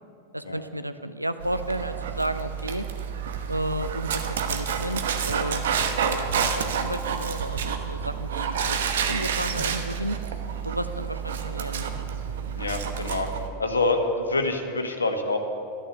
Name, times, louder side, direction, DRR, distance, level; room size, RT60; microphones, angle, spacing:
voice 1, 0.3-2.9 3.5-4.2 4.5-5.6 6.0-10.2 10.6-11.9, right 1 dB, 90° right, 10 dB, 0.6 m, -32 dB
Dog, 1.4-13.5, right 7 dB, 60° right, 1.0 m, -29 dB
voice 2, 12.5-13.3 13.6-15.4, left 2 dB, 75° left, 5 dB, 1.4 m, -26 dB
12.5 x 11.5 x 6.6 m, 2.6 s
figure-of-eight pair, 90°, 0 cm